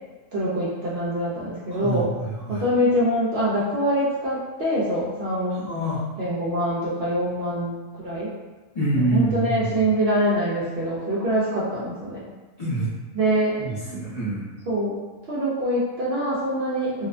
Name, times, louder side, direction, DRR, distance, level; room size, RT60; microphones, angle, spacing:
voice 1, 0.3-2.1 2.5-5.7 6.2-8.3 9.1-12.2 13.1-13.6 14.7-15.0 15.3-17.1, equal, 65° right, -7 dB, 0.6 m, -24 dB
voice 2, 1.7-2.6 5.7-6.0 8.7-9.7 12.6-12.9 13.6-14.4, right 2 dB, 40° left, -11 dB, 0.6 m, -26 dB
2.7 x 2.1 x 2.4 m, 1.3 s
omnidirectional pair, 1.5 m